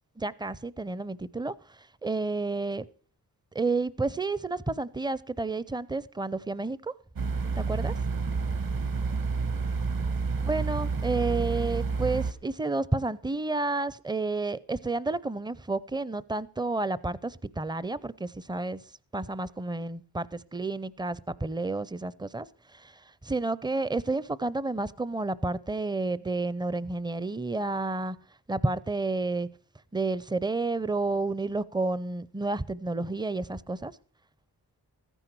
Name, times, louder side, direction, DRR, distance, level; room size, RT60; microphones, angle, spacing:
voice 1, 0.2-1.5 2.0-2.9 3.5-6.9 7.6-7.9 10.4-18.8 19.1-22.5 22.7-28.2 28.5-29.5 29.9-33.9, right 3 dB, 10° right, 0.5 m, -30 dB
sound 1, 7.2-12.3, right 4 dB, 60° right, 1.5 m, -29 dB
14.5 x 10.0 x 4.6 m
cardioid pair, 90°, 39 cm